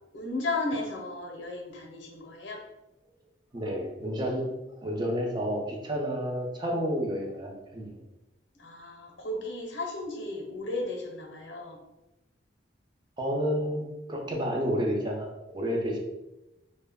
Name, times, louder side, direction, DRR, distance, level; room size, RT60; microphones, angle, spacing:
voice 1, 0.1-2.6 8.6-11.8, left 2 dB, 80° left, 1 dB, 0.6 m, -34 dB
voice 2, 3.5-4.5 4.8-8.0 13.2-16.0, equal, 25° right, 0 dB, 0.4 m, -30 dB
2.2 x 2.0 x 3.4 m, 0.96 s
head